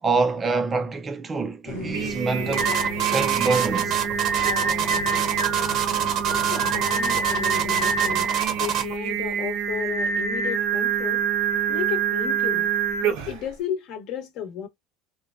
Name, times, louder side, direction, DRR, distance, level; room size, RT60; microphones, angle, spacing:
voice 1, 0.0-2.8 3.1-4.0, right 4 dB, 20° right, 0.4 m, -25 dB
sound 1, 1.7-8.3, left 11 dB, 80° left, 0.4 m, -37 dB
Singing, 1.7-13.5, right 6 dB, 75° right, 0.8 m, -26 dB
sound 2, 2.5-8.9, right 10 dB, 45° right, 0.8 m, -25 dB
voice 2, 6.4-8.3 8.6-11.2 11.7-12.7 13.0-14.7, left 9 dB, 55° left, 0.9 m, -33 dB
3.0 x 2.2 x 2.4 m
cardioid pair, 145°, 0 cm